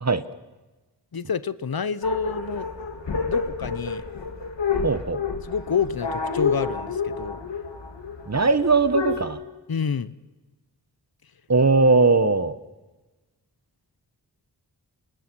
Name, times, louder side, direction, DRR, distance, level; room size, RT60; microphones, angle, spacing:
voice 1, 1.1-2.7 3.3-4.0 5.4-7.4 9.7-10.1, left 6 dB, 55° left, 16 dB, 0.9 m, -28 dB
sound 1, 2.0-9.2, left 5 dB, 85° left, 2.9 m, -29 dB
voice 2, 4.8-5.2 8.3-9.4 11.5-12.5, right 3 dB, 40° right, 13 dB, 1.3 m, -19 dB
30.0 x 27.0 x 6.2 m, 1.2 s
wide cardioid pair, 80°, 42 cm